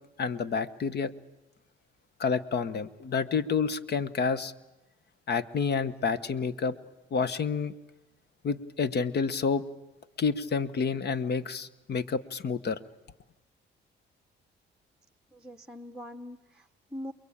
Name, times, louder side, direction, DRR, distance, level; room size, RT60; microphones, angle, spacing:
voice 1, 0.2-1.1 2.2-4.5 5.3-6.7 7.1-7.7 8.4-9.6 10.2-12.8, left 5 dB, 55° left, 15 dB, 1.2 m, -29 dB
voice 2, 15.3-17.1, left 1 dB, 5° right, 5 dB, 0.9 m, -42 dB
28.5 x 22.0 x 8.7 m, 0.97 s
cardioid pair, 90°, 20 cm